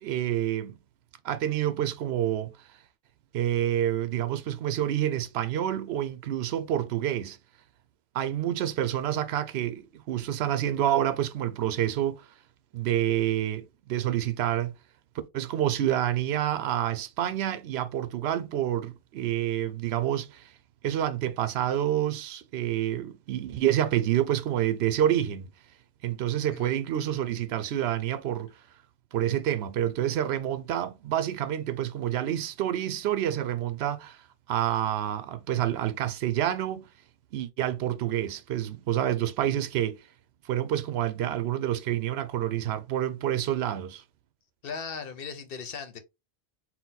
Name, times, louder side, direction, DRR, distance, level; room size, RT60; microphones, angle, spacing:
voice 1, 0.0-0.8 1.2-2.5 3.3-7.4 8.1-12.3 12.7-14.7 15.3-20.5 20.8-25.5 26.0-28.5 29.1-34.2 34.5-36.9 37.3-40.0 40.5-44.0, right 11 dB, 80° right, 0.8 m, -28 dB
voice 2, 44.6-46.0, left 6 dB, 65° left, 0.9 m, -38 dB
4.2 x 2.2 x 3.9 m
omnidirectional pair, 1.1 m